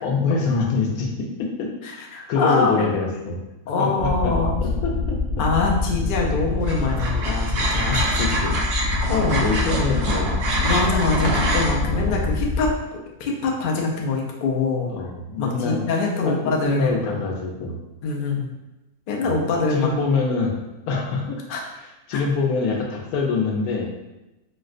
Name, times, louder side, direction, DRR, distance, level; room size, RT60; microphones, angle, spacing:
voice 1, 0.0-1.7 2.3-3.4 3.8-4.3 4.6-5.2 8.2-8.6 9.4-10.8 11.8-12.3 14.9-15.8 16.3-17.8 19.2-20.5 20.9-21.4 22.1-23.9, left 4 dB, 85° left, 1 dB, 1.1 m, -25 dB
voice 2, 1.8-3.3 3.7-4.5 5.4-8.2 8.9-9.4 10.6-14.9 15.4-17.2 18.0-18.5 19.1-19.9 21.5-21.6 22.1-22.2, left 3 dB, 65° left, -1 dB, 0.5 m, -24 dB
sound 1, 4.0-12.7, left 3 dB, 30° right, 1.0 m, -25 dB
sound 2, 6.7-11.7, right 2 dB, 60° right, 0.9 m, -25 dB
4.3 x 2.0 x 2.4 m, 1.0 s
omnidirectional pair, 1.5 m